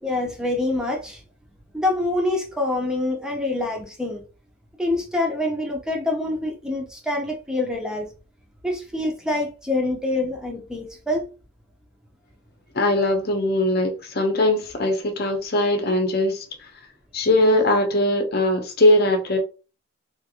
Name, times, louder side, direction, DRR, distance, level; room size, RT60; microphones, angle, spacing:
voice 1, 0.0-1.2 1.7-4.2 4.8-8.1 8.6-11.3, left 2 dB, 5° right, 0.7 m, -26 dB
voice 2, 12.7-16.5 17.1-19.4, left 1 dB, 45° left, 0.8 m, -20 dB
3.4 x 2.5 x 2.8 m
head